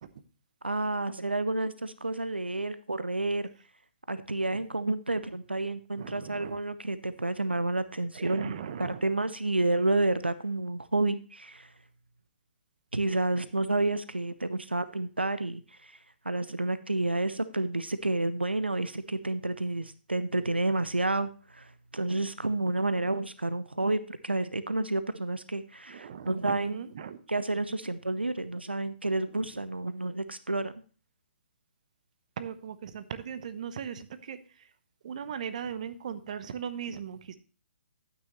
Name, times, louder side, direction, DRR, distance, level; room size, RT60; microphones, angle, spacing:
voice 1, 0.6-3.5 4.1-8.5 8.8-11.7 12.9-16.0 16.2-26.8 27.3-30.7, right 2 dB, 85° right, 13 dB, 0.7 m, -30 dB
voice 2, 6.0-6.6 8.1-9.0 25.9-27.2 29.6-29.7 32.4-34.4 35.0-37.3, right 8 dB, 45° right, 13 dB, 0.9 m, -38 dB
11.5 x 9.3 x 3.1 m, 0.37 s
figure-of-eight pair, 130°, 6 cm